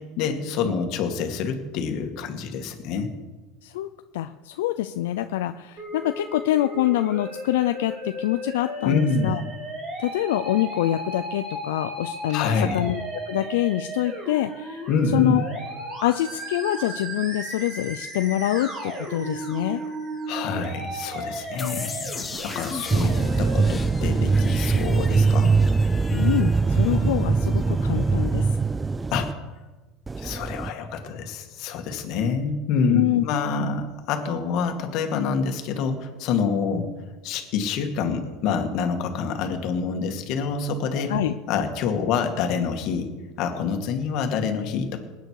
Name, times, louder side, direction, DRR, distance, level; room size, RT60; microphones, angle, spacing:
voice 1, 0.2-3.1 8.8-9.4 12.3-12.8 14.9-15.3 20.3-22.1 22.4-25.5 29.1-29.3 30.2-36.9 37.2-41.1 41.5-43.1 43.4-45.0, left 5 dB, 55° left, 5 dB, 2.2 m, -26 dB
voice 2, 3.6-9.4 10.0-13.0 13.3-14.8 15.1-15.5 16.0-19.8 26.1-28.5 32.9-33.2 33.6-33.7 41.1-41.3, left 14 dB, 85° left, 9 dB, 0.5 m, -25 dB
Musical instrument, 5.8-23.7, right 1 dB, 35° right, 3.2 m, -35 dB
sound 1, 21.6-28.4, left 5 dB, 20° left, 0.9 m, -38 dB
sound 2, 22.9-29.3 30.1-30.7, right 4 dB, 15° right, 0.3 m, -22 dB
20.0 x 9.2 x 4.9 m, 1.2 s
supercardioid pair, 130°, 0 cm